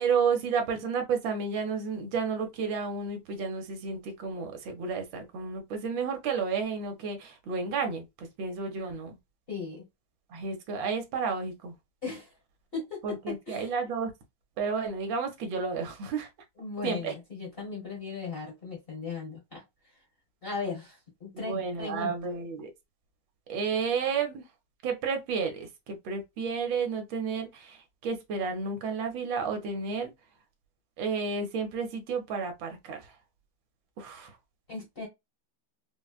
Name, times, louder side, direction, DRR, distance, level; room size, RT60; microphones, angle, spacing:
voice 1, 0.0-9.2 10.3-11.7 13.0-14.1 14.6-16.3 16.8-17.1 21.3-22.7 23.5-24.4 24.8-30.1 31.0-33.1 34.0-34.4, right 5 dB, 70° right, 1.4 m, -31 dB
voice 2, 9.5-9.8 12.0-12.3 12.7-13.7 16.6-19.6 20.4-22.1 34.7-35.1, left 4 dB, 35° left, 1.0 m, -37 dB
4.2 x 2.1 x 2.3 m
omnidirectional pair, 2.3 m